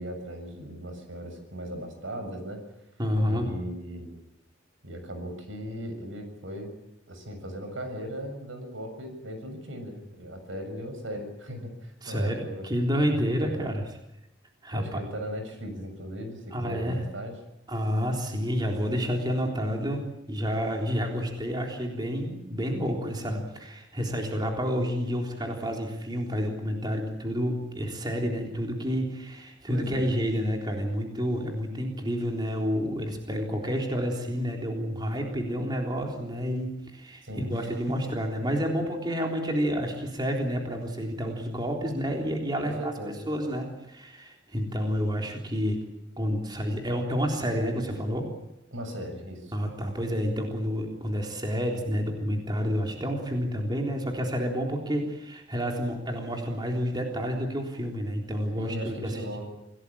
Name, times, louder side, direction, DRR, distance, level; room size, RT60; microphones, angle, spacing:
voice 1, 0.0-2.6 3.3-4.1 4.8-6.7 7.1-12.7 13.4-13.7 14.7-17.3 29.7-30.2 37.2-37.9 42.6-43.2 48.7-49.5 58.6-59.5, equal, 85° right, 7 dB, 7.1 m, -38 dB
voice 2, 3.0-3.5 12.0-13.8 14.6-15.0 16.5-17.0 17.7-45.8 46.2-48.3 49.5-59.2, equal, 25° right, 1 dB, 3.7 m, -29 dB
26.5 x 18.0 x 8.7 m, 0.89 s
head